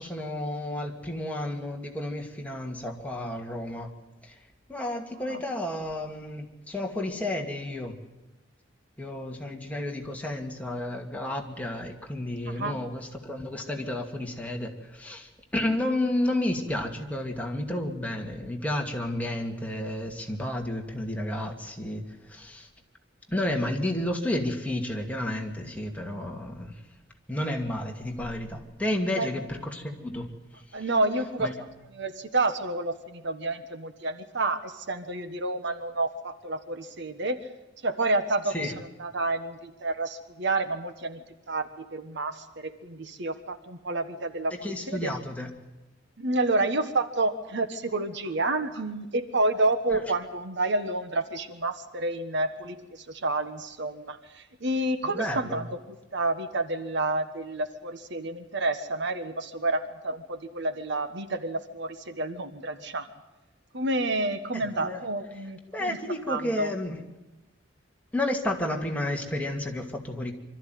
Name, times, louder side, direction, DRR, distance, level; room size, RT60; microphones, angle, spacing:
voice 1, 0.0-3.9 4.2-4.4 4.7-8.0 9.0-22.7 23.3-26.8 27.3-30.3 30.7-30.9 31.4-31.5 38.5-38.8 44.6-45.5 49.9-50.0 55.0-55.6 64.5-65.0 65.7-67.0 68.1-70.3, left 1 dB, 5° left, 1 dB, 2.4 m, -31 dB
voice 2, 30.7-31.5 31.9-37.4 37.8-45.1 46.2-63.1 63.7-66.0 66.3-66.7, right 2 dB, 60° right, 10 dB, 1.4 m, -29 dB
25.0 x 13.5 x 9.4 m, 1.1 s
head